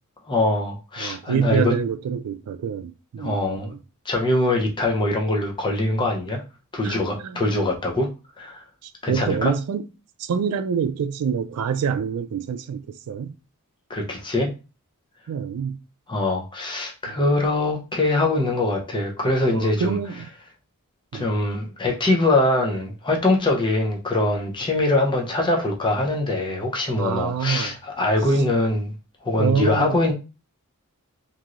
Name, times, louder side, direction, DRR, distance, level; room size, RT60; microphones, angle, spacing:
voice 1, 0.3-1.7 3.2-3.8 4.1-6.4 6.7-8.1 8.4-8.6 9.0-9.5 13.9-14.5 16.1-20.0 21.1-28.9 29.2-30.1, left 2 dB, 20° left, 0.6 m, -23 dB
voice 2, 1.0-3.6 6.8-7.4 8.8-9.9 10.2-13.4 15.3-15.8 19.5-20.3 21.1-21.3 27.0-27.7 29.4-30.0, right 7 dB, 75° right, 0.3 m, -26 dB
3.0 x 2.6 x 2.4 m
head